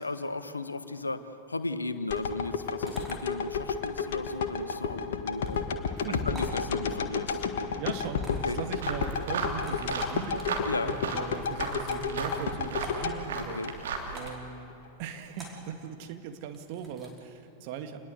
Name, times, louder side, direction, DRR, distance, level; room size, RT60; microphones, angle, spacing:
voice 1, 0.0-5.7 6.1-7.7 8.4-8.6 10.6-10.9 13.5-13.7, left 2 dB, 80° left, 12 dB, 1.1 m, -35 dB
sound 1, 2.1-14.3 14.7-14.8, left 6 dB, 60° left, 1.6 m, -32 dB
sound 2, 2.9-3.2 5.4-5.6 6.3-6.6 8.1-8.6 9.5-10.4 11.4-12.1 12.8-13.0 14.1-14.4 15.3-15.6 16.5-17.2, equal, 10° right, 5.3 m, -46 dB
voice 2, 6.0-6.5 7.7-13.6 14.1-14.7 15.0-18.0, right 7 dB, 45° right, 6 dB, 2.0 m, -39 dB
sound 3, 8.8-14.3, right 4 dB, 60° right, 3.1 m, -35 dB
27.5 x 21.0 x 8.2 m, 2.9 s
figure-of-eight pair, 90°, 0 cm